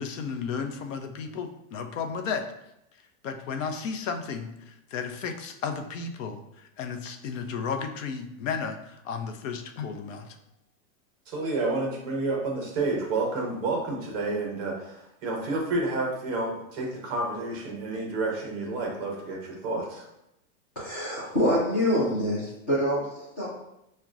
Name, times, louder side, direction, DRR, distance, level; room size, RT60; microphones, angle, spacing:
voice 1, 0.0-2.4 3.2-10.4 22.2-22.3, left 6 dB, 70° left, 6 dB, 0.6 m, -33 dB
voice 2, 11.3-20.1, right 2 dB, 30° right, -1 dB, 0.6 m, -30 dB
voice 3, 20.8-23.5, equal, 15° left, -12 dB, 0.3 m, -26 dB
5.8 x 2.2 x 2.4 m, 0.83 s
supercardioid pair, 170°, 40 cm